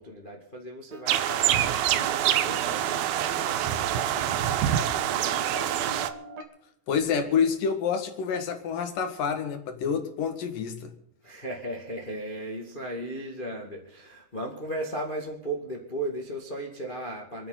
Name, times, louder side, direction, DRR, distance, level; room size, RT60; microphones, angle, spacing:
voice 1, 0.0-6.1 11.2-17.5, right 1 dB, 25° left, 0 dB, 1.2 m, -37 dB
sound 1, 1.1-6.1, right 11 dB, 75° right, 2.4 m, -26 dB
sound 2, 1.9-6.4, right 2 dB, 50° right, 2.8 m, -44 dB
voice 2, 6.9-10.9, left 6 dB, 60° left, 7 dB, 3.1 m, -28 dB
27.5 x 10.0 x 4.0 m, 0.76 s
omnidirectional pair, 4.8 m